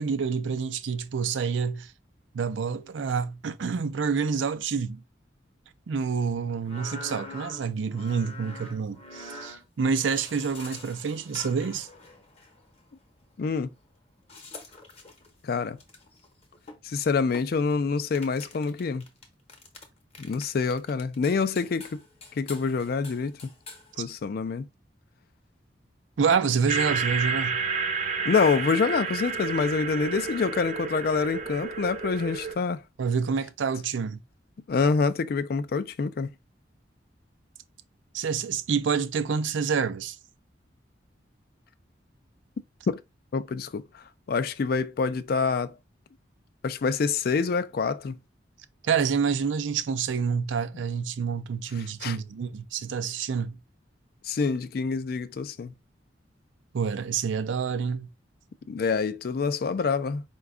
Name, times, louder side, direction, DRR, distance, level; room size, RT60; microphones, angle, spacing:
voice 1, 0.0-1.9 2.3-5.0 5.9-11.9 24.0-24.1 26.2-27.6 33.0-34.2 38.1-40.2 48.8-53.6 56.7-58.1, right 6 dB, 90° right, 0.4 m, -28 dB
sound 1, 6.6-12.6 14.3-17.7 18.1-19.9 20.1-23.9, left 3 dB, 35° left, 0.8 m, -44 dB
voice 2, 13.4-13.7 15.4-15.8 16.8-19.1 20.2-22.0 22.4-23.4 24.0-24.6 28.2-32.8 34.7-36.3 42.9-43.0 43.3-43.8 44.3-45.8 46.6-48.2 52.0-52.2 54.2-55.7 58.7-60.2, left 5 dB, 55° left, 0.3 m, -26 dB
sound 2, 26.7-32.5, right 5 dB, 40° right, 0.6 m, -30 dB
4.9 x 2.3 x 3.6 m
head